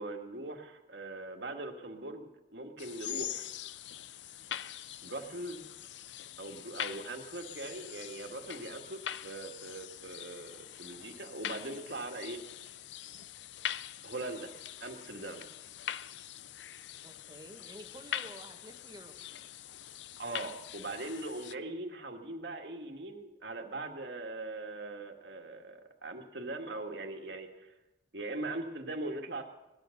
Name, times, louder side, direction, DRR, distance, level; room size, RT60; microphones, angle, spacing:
voice 1, 0.0-3.5 5.0-5.6 6.4-12.4 14.0-14.5 14.8-15.5 20.2-27.7 28.1-29.4, right 2 dB, 65° right, 3 dB, 1.9 m, -41 dB
sound 1, 2.8-21.6, left 10 dB, 75° left, 0.5 m, -43 dB
voice 2, 17.0-19.5, right 1 dB, 20° right, 4 dB, 1.5 m, -51 dB
18.5 x 11.5 x 6.6 m, 1.0 s
head